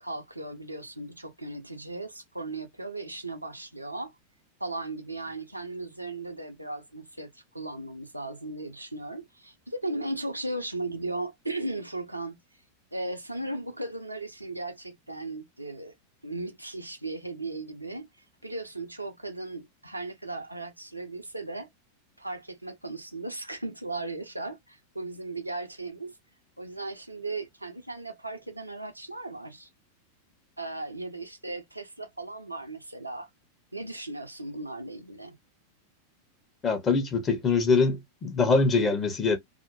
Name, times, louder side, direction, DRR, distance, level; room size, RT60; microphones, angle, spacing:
voice 1, 0.0-4.1 4.6-12.4 12.9-15.9 16.2-18.1 18.4-21.7 22.2-26.2 26.6-29.7 30.6-33.3 33.7-35.4, right 2 dB, 85° right, 0.5 m, -37 dB
voice 2, 36.6-39.4, left 4 dB, 25° left, 0.8 m, -23 dB
2.7 x 2.1 x 2.5 m
figure-of-eight pair, 90°, 0 cm